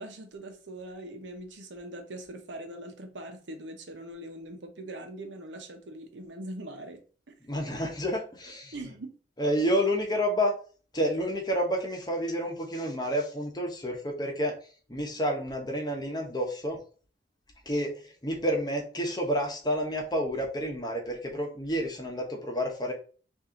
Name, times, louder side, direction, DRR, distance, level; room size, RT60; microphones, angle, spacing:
voice 1, 0.0-7.4 8.7-9.2, right 1 dB, 90° right, 0.8 m, -42 dB
voice 2, 7.5-8.7 9.4-10.5 10.9-14.6 14.9-16.8 17.7-17.9 18.2-22.9, equal, 25° left, 0.9 m, -29 dB
4.3 x 2.6 x 3.8 m
head